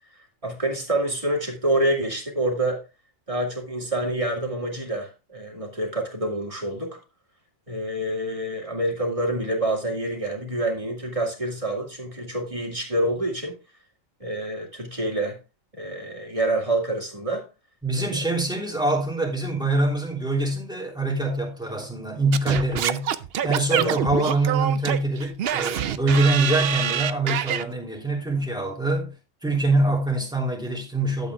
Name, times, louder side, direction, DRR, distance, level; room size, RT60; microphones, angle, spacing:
voice 1, 0.4-2.8 3.3-7.0 7.7-13.6 14.2-15.4 15.7-17.4 18.0-18.2 23.7-23.9, right 1 dB, 25° right, 2.5 m, -27 dB
voice 2, 17.8-23.1 23.4-29.1 29.4-31.3, right 2 dB, 5° right, 3.0 m, -24 dB
Singing / Scratching (performance technique), 22.3-27.6, right 9 dB, 60° right, 0.7 m, -26 dB
12.0 x 8.4 x 2.3 m
omnidirectional pair, 1.4 m